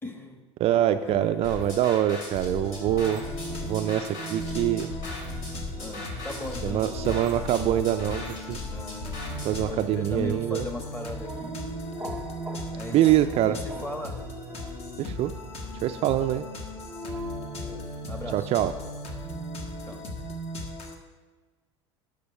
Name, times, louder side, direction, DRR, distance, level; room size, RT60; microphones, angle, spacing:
voice 1, 0.0-0.4 1.0-1.5 5.8-6.8 8.7-9.1 9.7-11.6 12.7-14.2 17.6-18.5 19.9-20.0, left 2 dB, 15° left, 5 dB, 1.3 m, -38 dB
voice 2, 0.6-3.2 3.6-4.9 6.6-8.2 8.5-8.6 9.4-10.6 12.9-13.6 15.0-15.3 15.8-16.5 18.3-18.7, right 12 dB, 45° right, 9 dB, 0.4 m, -24 dB
sound 1, 0.7-15.8 16.4-17.8, equal, 5° right, 1.0 m, -42 dB
sound 2, 1.4-9.6, left 2 dB, 70° left, 2.6 m, -37 dB
sound 3, 2.6-21.0, equal, 45° left, 1.4 m, -38 dB
11.0 x 4.9 x 5.4 m, 1.4 s
hypercardioid pair, 80°, 15 cm